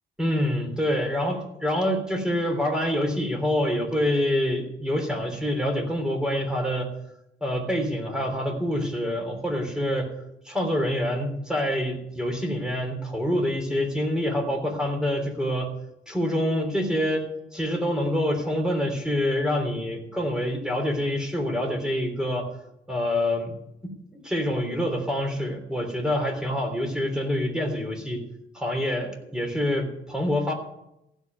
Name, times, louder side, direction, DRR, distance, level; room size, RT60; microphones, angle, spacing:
voice 1, 0.2-6.9 7.4-10.1 10.4-15.7 16.1-17.3 17.5-22.5 22.9-23.6 24.2-28.2 28.5-30.5, left 1 dB, 5° right, 2 dB, 3.4 m, -26 dB
15.5 x 5.4 x 9.3 m, 0.84 s
cardioid pair, 90°, 20 cm